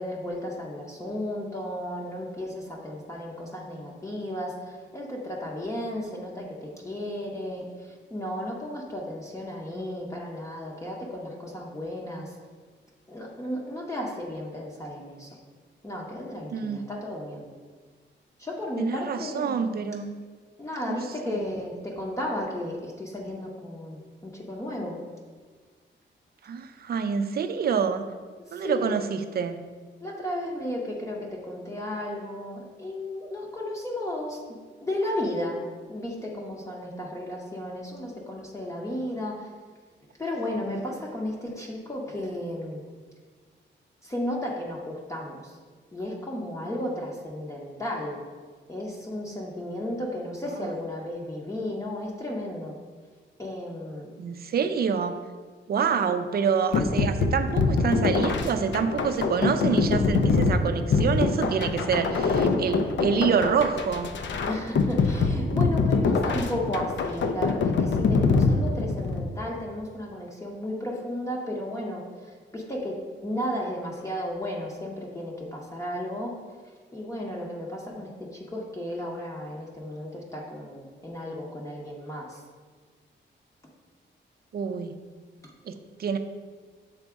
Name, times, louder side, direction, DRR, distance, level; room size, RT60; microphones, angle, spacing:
voice 1, 0.0-12.4 13.1-15.4 15.8-17.5 18.4-19.7 20.6-25.0 28.4-28.9 30.0-34.4 34.8-39.5 40.2-42.8 44.0-45.6 45.9-48.2 48.7-52.8 53.4-54.2 64.5-76.4 76.9-82.4 85.4-85.5, left 1 dB, 15° left, -3 dB, 0.7 m, -34 dB
voice 2, 18.8-20.1 20.9-21.0 26.4-28.1 28.5-29.6 54.2-55.1 55.7-64.1 84.5-85.0 85.7-85.8 86.0-86.2, right 6 dB, 50° right, 9 dB, 0.4 m, -27 dB
sound 1, 56.7-69.3, left 4 dB, 70° left, 0.5 m, -24 dB
6.7 x 4.0 x 3.5 m, 1.5 s
wide cardioid pair, 135°, 20 cm